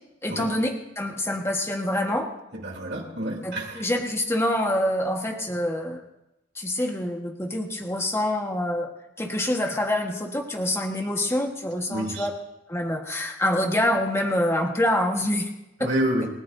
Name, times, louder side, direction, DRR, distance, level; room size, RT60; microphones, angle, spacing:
voice 1, 0.2-2.3 3.4-6.0 6.6-8.9 9.2-12.3 12.7-15.5, left 1 dB, 15° left, 2 dB, 1.5 m, -26 dB
voice 2, 2.6-3.8 11.9-12.3 15.8-16.3, right 1 dB, 65° right, 0 dB, 3.2 m, -28 dB
29.0 x 14.0 x 2.7 m, 0.93 s
head